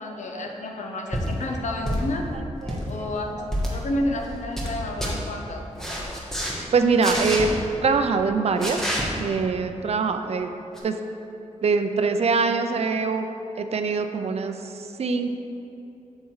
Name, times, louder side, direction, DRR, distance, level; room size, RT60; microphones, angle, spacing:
voice 1, 0.0-2.3 2.9-3.4 3.7-5.6 6.0-6.2, left 1 dB, 75° left, 2 dB, 0.8 m, -30 dB
sound 1, 1.1-1.3 1.8-2.2 2.5-2.9 3.5-3.7 4.2-4.7 5.0-5.1 5.8-6.5 7.0-7.4 8.6-9.0 10.7-10.8, equal, 5° left, 1.2 m, -28 dB
voice 2, 2.6-3.1 3.7-3.9 6.7-7.5 7.8-10.5 10.8-11.0 11.6-13.3 13.6-15.3, right 4 dB, 60° right, 7 dB, 0.5 m, -24 dB
8.2 x 7.4 x 3.2 m, 2.8 s
wide cardioid pair, 140°, 12 cm